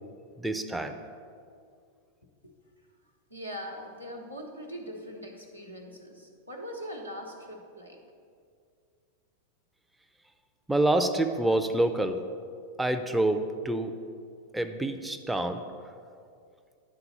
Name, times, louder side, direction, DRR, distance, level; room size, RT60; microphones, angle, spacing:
voice 1, 0.4-0.9 10.7-12.2 12.8-13.9 14.5-15.6, right 1 dB, 5° right, 6 dB, 0.4 m, -27 dB
voice 2, 3.3-8.0, equal, 90° right, -1 dB, 1.0 m, -41 dB
10.0 x 3.9 x 5.6 m, 2.3 s
figure-of-eight pair, 90°, 0 cm